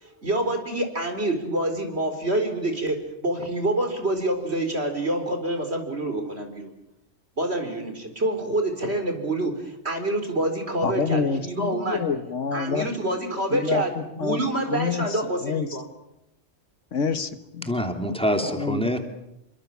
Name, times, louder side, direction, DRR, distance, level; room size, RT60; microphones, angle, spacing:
voice 1, 0.0-6.7 7.4-12.0 12.5-15.8, right 1 dB, 55° right, 6 dB, 4.6 m, -27 dB
voice 2, 10.8-12.9 13.5-14.4 14.7-15.2 15.4-15.7 16.9-17.7 18.4-18.8, left 5 dB, 75° left, 11 dB, 1.6 m, -27 dB
voice 3, 17.6-19.0, equal, 5° left, 5 dB, 3.0 m, -25 dB
28.0 x 24.5 x 7.3 m, 0.84 s
omnidirectional pair, 1.3 m